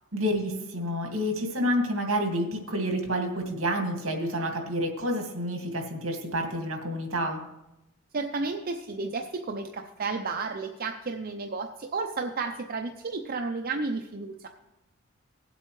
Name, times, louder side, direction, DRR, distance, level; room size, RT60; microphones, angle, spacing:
voice 1, 0.1-7.4, equal, 70° right, 3 dB, 2.1 m, -29 dB
voice 2, 8.1-14.5, right 3 dB, 45° right, 4 dB, 0.6 m, -32 dB
18.0 x 7.9 x 3.2 m, 0.91 s
head